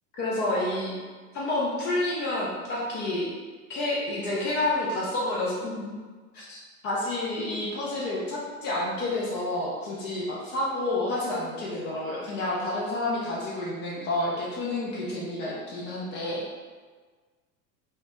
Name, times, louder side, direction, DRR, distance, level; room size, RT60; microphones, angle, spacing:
voice 1, 0.1-1.0 1.3-3.3 3.7-6.0 6.3-16.4, left 2 dB, 25° left, -5 dB, 0.3 m, -29 dB
2.1 x 2.0 x 2.8 m, 1.5 s
figure-of-eight pair, 80°, 45 cm